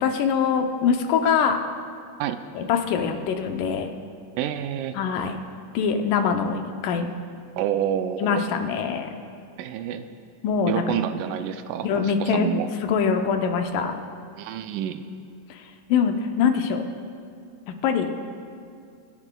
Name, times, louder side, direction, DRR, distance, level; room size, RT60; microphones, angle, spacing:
voice 1, 0.0-1.6 2.6-3.9 4.9-5.4 5.7-7.1 8.2-9.1 10.4-10.8 11.8-12.5 12.8-14.0 15.5-15.6 15.9-16.8 17.8-18.1, left 6 dB, 85° left, 5 dB, 2.4 m, -23 dB
voice 2, 4.4-5.0 7.6-8.4 9.6-10.1 10.7-12.7 14.4-15.0, right 10 dB, 80° right, 9 dB, 2.0 m, -28 dB
25.0 x 10.0 x 2.3 m, 2.4 s
omnidirectional pair, 3.7 m